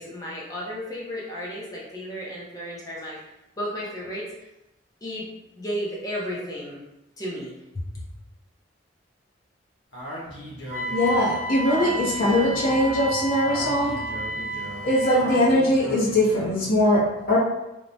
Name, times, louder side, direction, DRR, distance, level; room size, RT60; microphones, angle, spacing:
voice 1, 0.0-3.2 3.6-4.3 5.0-5.3 5.5-6.8 7.2-7.8, equal, 20° left, -6 dB, 0.5 m, -33 dB
Speech, 9.9-16.7, equal, 80° left, 0.9 m, -38 dB
Wind instrument woodwind instrument, 10.7-15.5, right 1 dB, 50° right, 0.7 m, -32 dB
voice 2, 10.9-14.0 14.8-17.4, left 1 dB, 50° left, -5 dB, 0.8 m, -21 dB
3.0 x 2.1 x 2.6 m, 0.93 s
head